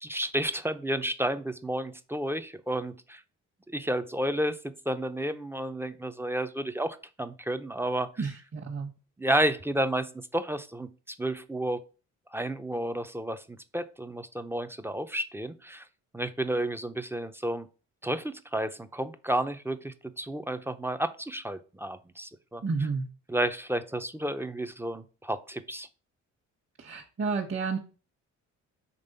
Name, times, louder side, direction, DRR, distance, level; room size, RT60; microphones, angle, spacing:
voice 1, 0.0-3.2 3.7-8.1 9.2-11.8 12.3-15.9 16.1-17.7 18.0-22.6 23.3-25.9, right 1 dB, 10° right, 10 dB, 0.5 m, -31 dB
voice 2, 8.2-8.9 22.6-23.1 26.8-27.8, right 4 dB, 40° right, 0 dB, 1.2 m, -31 dB
5.3 x 3.3 x 5.4 m, 0.35 s
cardioid pair, 90°, 30 cm